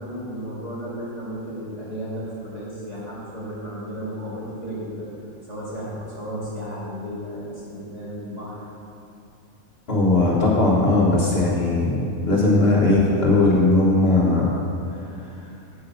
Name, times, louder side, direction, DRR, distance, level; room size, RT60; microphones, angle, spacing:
voice 1, 0.0-5.1 5.5-8.7, equal, 30° right, -8 dB, 2.7 m, -33 dB
voice 2, 9.9-14.5, left 2 dB, 50° left, -4 dB, 1.4 m, -18 dB
8.6 x 7.8 x 5.6 m, 2.7 s
omnidirectional pair, 1.4 m